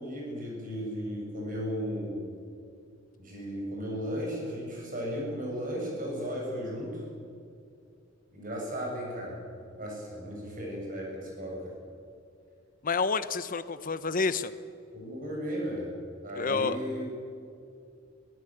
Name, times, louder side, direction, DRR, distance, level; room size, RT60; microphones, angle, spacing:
voice 1, 0.0-2.3 3.2-7.0 8.3-9.4 9.7-11.7 14.9-15.9 16.2-17.0, equal, 45° right, -1 dB, 7.3 m, -35 dB
voice 2, 12.8-14.5 16.4-16.8, left 4 dB, 45° left, 14 dB, 0.9 m, -29 dB
22.0 x 16.0 x 9.0 m, 2.4 s
head